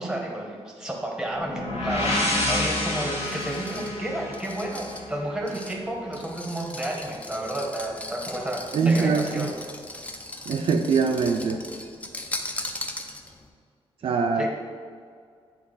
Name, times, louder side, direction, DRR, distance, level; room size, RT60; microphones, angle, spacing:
voice 1, 0.0-2.2 2.4-9.5 14.4-14.5, right 1 dB, 5° right, 1 dB, 1.0 m, -31 dB
sound 1, 1.3-5.2, left 1 dB, 80° left, 1.5 m, -28 dB
sound 2, 2.1-13.5, left 1 dB, 15° left, 0.5 m, -39 dB
voice 2, 8.7-9.5 10.5-11.6 14.0-14.5, right 5 dB, 60° right, 4 dB, 0.4 m, -23 dB
8.6 x 3.4 x 3.8 m, 2.1 s
wide cardioid pair, 120°, 10 cm